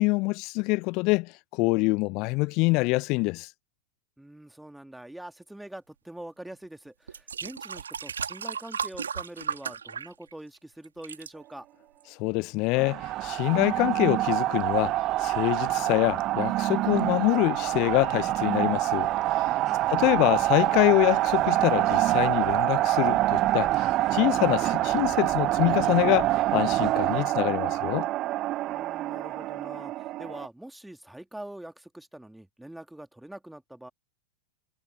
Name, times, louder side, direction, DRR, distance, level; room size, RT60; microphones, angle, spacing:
voice 1, 0.0-3.5 12.2-14.9 15.2-19.1 19.9-28.1, left 26 dB, 40° left, 1.0 m, -25 dB
voice 2, 4.2-11.7 19.6-20.1 28.7-33.9, right 1 dB, 5° right, 2.7 m, -44 dB
sound 1, 6.5-6.6 7.1-10.6 10.8-11.3 12.0-12.1, right 7 dB, 70° right, 3.7 m, -35 dB
sound 2, 12.8-30.5, right 16 dB, 35° right, 0.5 m, -26 dB
figure-of-eight pair, 90°, 0 cm